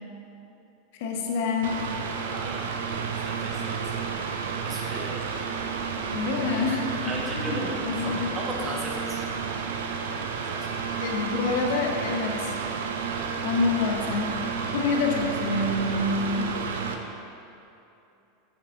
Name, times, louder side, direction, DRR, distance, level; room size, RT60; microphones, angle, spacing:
voice 1, 0.9-1.9 6.0-8.3 11.0-12.5 13.4-14.3 14.7-16.6, left 3 dB, 55° left, 2 dB, 0.8 m, -27 dB
Mechanical fan, 1.6-16.9, right 6 dB, 65° right, 0.5 m, -31 dB
voice 2, 2.2-2.8 3.1-4.1 4.6-5.4 7.0-9.2 10.4-10.8, right 1 dB, 20° right, -2 dB, 1.2 m, -37 dB
6.6 x 5.9 x 3.8 m, 2.8 s
figure-of-eight pair, 85°, 0 cm